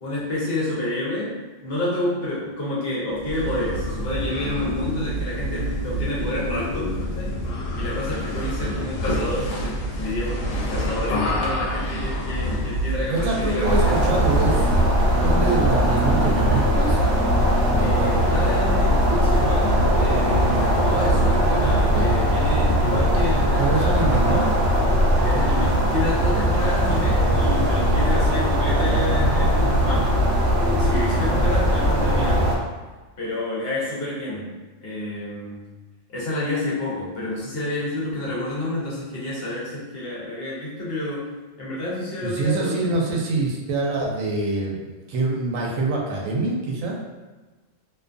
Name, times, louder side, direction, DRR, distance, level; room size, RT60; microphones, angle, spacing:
voice 1, 0.0-7.4 7.7-14.4 17.8-24.6 25.2-30.2 30.8-32.6 33.2-34.5 34.8-35.6 36.1-41.3 41.6-43.0, left 1 dB, 55° left, -6 dB, 0.8 m, -29 dB
sound 1, 3.2-14.9, equal, 85° left, 1.0 m, -27 dB
voice 2, 13.1-14.6 15.2-17.0 17.7-18.1 21.8-22.1 23.6-24.5 27.2-27.4 42.2-47.0, right 3 dB, 85° right, -1 dB, 1.0 m, -25 dB
sound 2, 13.6-32.6, equal, 65° right, 0.7 m, -20 dB
2.5 x 2.3 x 2.5 m, 1.2 s
omnidirectional pair, 1.3 m